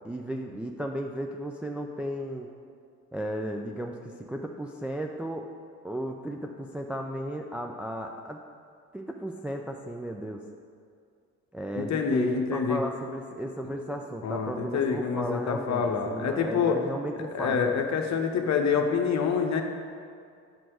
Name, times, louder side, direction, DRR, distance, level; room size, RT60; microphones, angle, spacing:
voice 1, 0.0-2.5 3.1-5.5 5.8-8.4 8.9-10.4 11.5-17.6, right 1 dB, 5° right, 2 dB, 0.4 m, -34 dB
voice 2, 11.8-12.8 14.2-16.8 17.2-19.6, left 6 dB, 40° left, 4 dB, 1.0 m, -27 dB
8.8 x 5.9 x 4.8 m, 2.3 s
figure-of-eight pair, 50°, 44 cm